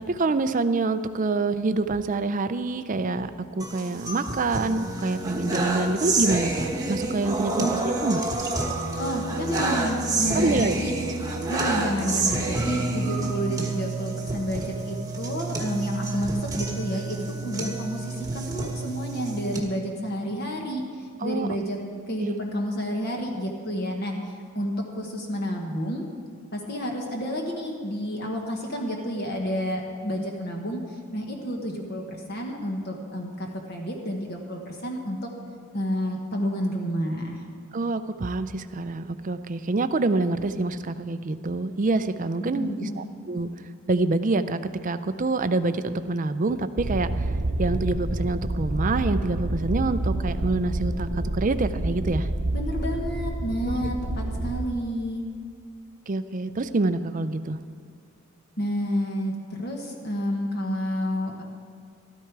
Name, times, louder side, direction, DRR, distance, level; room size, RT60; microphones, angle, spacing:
voice 1, 0.0-8.2 10.3-10.7 21.2-21.6 22.2-22.4 37.7-43.5 43.9-52.3 53.7-53.9 56.1-57.6, right 3 dB, 35° right, 11 dB, 0.5 m, -26 dB
sound 1, 3.6-19.6, right 2 dB, 15° right, 1.2 m, -28 dB
voice 2, 9.0-10.9 11.5-20.8 21.2-21.8 22.1-26.0 26.5-35.2 35.7-37.4 42.4-43.0 52.5-55.2 58.6-61.4, equal, 45° left, 1 dB, 1.3 m, -30 dB
sound 2, 46.8-54.7, right 1 dB, 70° right, 1.0 m, -28 dB
13.5 x 13.0 x 4.7 m, 2.2 s
head